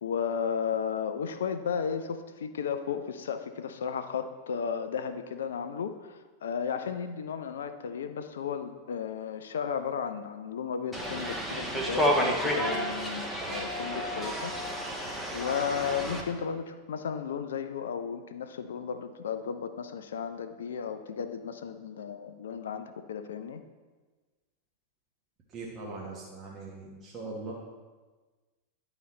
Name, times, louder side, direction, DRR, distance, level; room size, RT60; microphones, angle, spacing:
voice 1, 0.0-14.5 15.3-23.6, left 7 dB, 65° left, 9 dB, 0.4 m, -34 dB
sound 1, 10.9-16.2, equal, ahead, 1.2 m, -31 dB
voice 2, 25.5-27.5, right 3 dB, 25° right, -5 dB, 1.3 m, -40 dB
11.0 x 3.9 x 4.2 m, 1.3 s
figure-of-eight pair, 90°, 0 cm